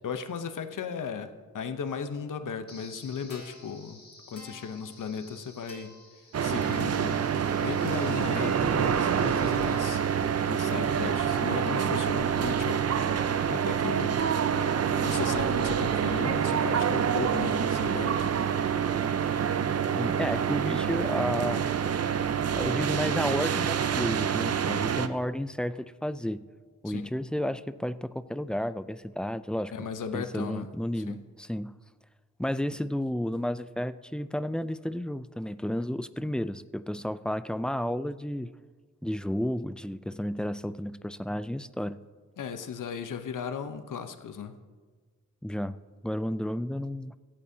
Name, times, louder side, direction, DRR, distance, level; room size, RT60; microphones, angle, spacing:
voice 1, 0.0-4.0 4.3-5.9 6.4-7.2 7.6-10.0 10.5-14.2 15.0-18.3 26.8-27.0 29.7-30.7 31.1-31.2 42.4-44.5, left 6 dB, 75° left, 9 dB, 0.8 m, -36 dB
sound 1, 2.7-11.7, left 2 dB, 45° left, 3.5 m, -52 dB
sound 2, 6.3-25.1, right 8 dB, 50° right, 0.6 m, -27 dB
voice 2, 19.9-21.7 22.6-26.5 26.8-29.9 30.1-31.8 32.4-38.5 39.0-42.0 45.4-45.8 46.0-47.2, equal, 5° left, 14 dB, 0.3 m, -32 dB
24.0 x 8.7 x 2.8 m, 1.4 s
wide cardioid pair, 95°, 31 cm